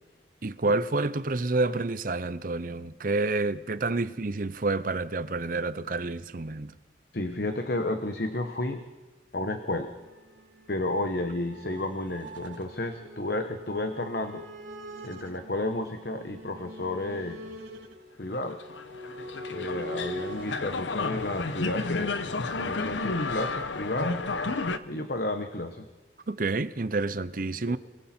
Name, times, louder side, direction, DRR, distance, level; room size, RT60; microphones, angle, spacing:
voice 1, 0.4-6.7 26.3-27.8, right 3 dB, 45° right, 0.7 m, -29 dB
voice 2, 7.1-8.8 9.3-10.0 10.7-14.4 15.0-17.4 18.2-18.6 19.5-22.1 22.6-24.2 24.8-25.8 27.7-27.8, left 2 dB, 55° left, 1.1 m, -32 dB
sound 1, 10.0-20.6, equal, 80° right, 4.2 m, -43 dB
sound 2, 18.5-24.8, left 3 dB, 75° left, 0.9 m, -31 dB
29.5 x 20.5 x 4.4 m
head